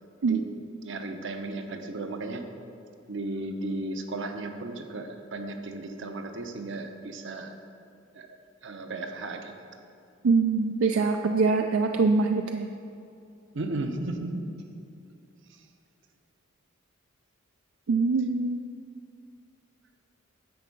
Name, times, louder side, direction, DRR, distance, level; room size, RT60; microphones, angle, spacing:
voice 1, 0.8-2.4 3.1-7.6 8.1-8.3 8.6-9.5 13.5-14.5, right 2 dB, 65° right, 6 dB, 0.8 m, -35 dB
voice 2, 10.2-12.7 17.9-18.6, right 4 dB, 80° right, 6 dB, 0.4 m, -23 dB
10.5 x 7.3 x 5.3 m, 2.6 s
head